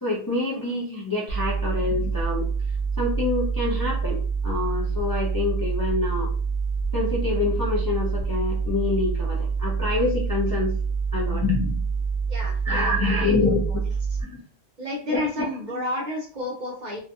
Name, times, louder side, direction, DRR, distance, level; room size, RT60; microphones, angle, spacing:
voice 1, 0.0-2.5 3.0-6.3 6.9-10.7 11.1-11.8 12.6-13.6 14.2-14.4 15.1-15.5, left 3 dB, 25° left, -4 dB, 0.5 m, -26 dB
sound 1, 1.3-14.2, right 5 dB, 60° left, 0.8 m, -26 dB
voice 2, 12.3-13.8 14.1-14.2 14.8-17.0, left 1 dB, 50° right, -1 dB, 0.7 m, -31 dB
2.6 x 2.3 x 2.6 m, 0.41 s
omnidirectional pair, 1.2 m